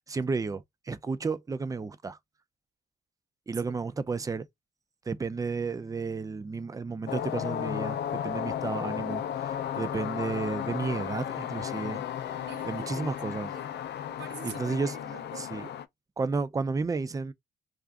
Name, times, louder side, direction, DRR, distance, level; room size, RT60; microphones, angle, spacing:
voice 1, 0.0-2.2 3.5-4.5 5.1-12.0 12.7-13.5 14.4-14.9 15.4-15.7 16.2-17.3, right 4 dB, 15° right, 0.4 m, -32 dB
sound 1, 7.1-15.9, left 10 dB, 60° left, 0.5 m, -34 dB
voice 2, 12.3-13.7 14.1-15.7, right 7 dB, 60° right, 1.0 m, -46 dB
2.5 x 2.4 x 3.4 m
cardioid pair, 90°, 20 cm